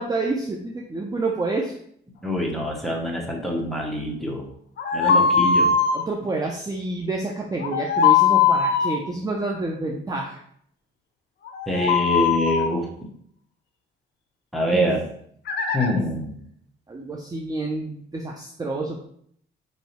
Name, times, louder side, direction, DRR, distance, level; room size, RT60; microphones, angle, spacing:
voice 1, 0.0-1.7 5.9-10.4 14.7-14.9 16.9-19.0, right 2 dB, 20° right, 0 dB, 0.5 m, -28 dB
voice 2, 2.2-4.4 4.9-5.7 11.7-12.8 14.5-15.0 15.7-16.4, equal, ahead, -1 dB, 1.0 m, -25 dB
sound 1, 4.8-6.0 7.6-9.0 11.5-12.7 15.5-15.9, left 6 dB, 60° left, 0.6 m, -20 dB
3.0 x 2.7 x 4.2 m, 0.65 s
cardioid pair, 90°, 20 cm